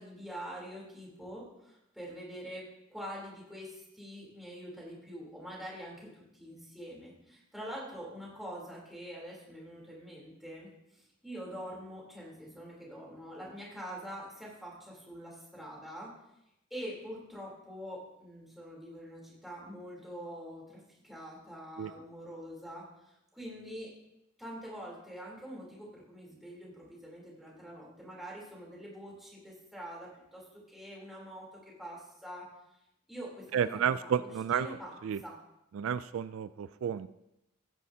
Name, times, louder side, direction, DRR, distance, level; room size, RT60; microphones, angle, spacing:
voice 1, 0.0-16.1 16.7-23.9 24.4-32.5 33.1-34.9 35.2-35.4, equal, ahead, -4 dB, 3.4 m, -45 dB
voice 2, 33.5-34.8 35.0-35.2 35.7-37.1, right 8 dB, 75° right, 14 dB, 0.3 m, -31 dB
15.5 x 9.8 x 2.8 m, 0.87 s
head